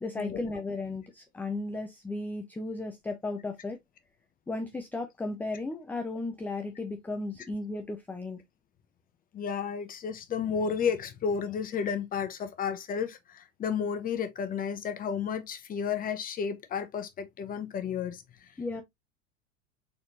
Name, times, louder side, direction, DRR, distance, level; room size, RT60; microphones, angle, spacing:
voice 1, 0.0-3.8 4.5-8.4 18.6-18.8, left 2 dB, 5° left, 0.5 m, -35 dB
voice 2, 9.3-18.5, left 6 dB, 25° left, 0.9 m, -32 dB
4.2 x 4.1 x 2.5 m
figure-of-eight pair, 85°, 35 cm